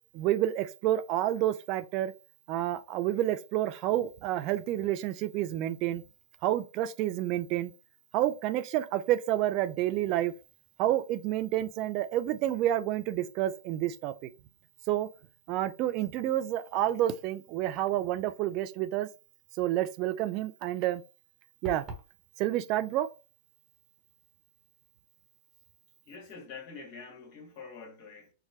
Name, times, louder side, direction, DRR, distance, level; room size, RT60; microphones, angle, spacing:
voice 1, 0.1-2.1 2.5-6.0 6.4-7.7 8.1-10.3 10.8-14.1 14.9-15.1 15.5-19.1 19.6-21.0 21.6-21.8 22.4-23.1, right 13 dB, 45° right, 0.3 m, -29 dB
sound 1, 21.6-22.1, right 1 dB, 30° right, 1.0 m, -40 dB
voice 2, 26.1-28.3, left 5 dB, 45° left, 1.4 m, -46 dB
4.5 x 2.1 x 2.8 m
hypercardioid pair, 105°, 0 cm